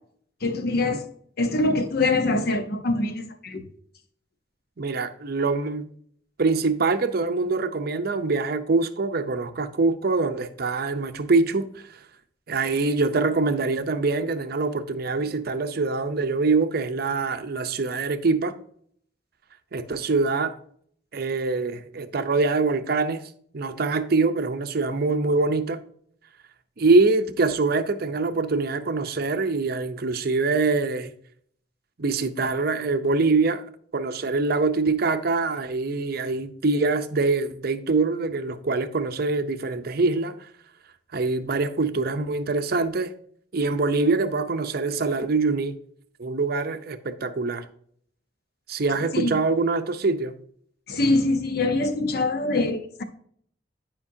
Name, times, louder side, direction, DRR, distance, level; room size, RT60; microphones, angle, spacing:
voice 1, 0.4-1.0 1.4-3.6 49.1-49.4 50.9-53.0, left 2 dB, 60° left, 0.8 m, -24 dB
voice 2, 4.8-5.9 6.4-11.7 12.5-18.5 19.7-20.5 21.1-23.2 23.5-25.8 26.8-31.1 32.0-33.6 33.9-40.3 41.1-43.1 43.5-45.7 46.2-47.7 48.7-50.3, right 3 dB, 55° right, 0.6 m, -24 dB
11.0 x 5.2 x 2.7 m
head